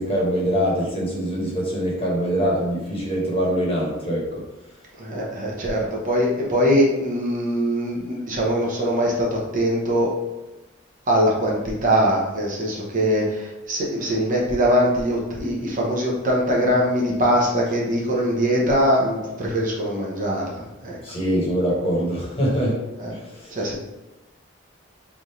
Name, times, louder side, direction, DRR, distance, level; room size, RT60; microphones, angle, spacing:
voice 1, 0.0-4.4 21.0-22.8 23.1-23.5, equal, 30° left, -5 dB, 1.1 m, -23 dB
voice 2, 5.0-10.1 11.1-21.0 23.0-23.1 23.5-23.8, equal, 40° right, -3 dB, 0.8 m, -22 dB
3.4 x 2.5 x 4.3 m, 1.0 s
head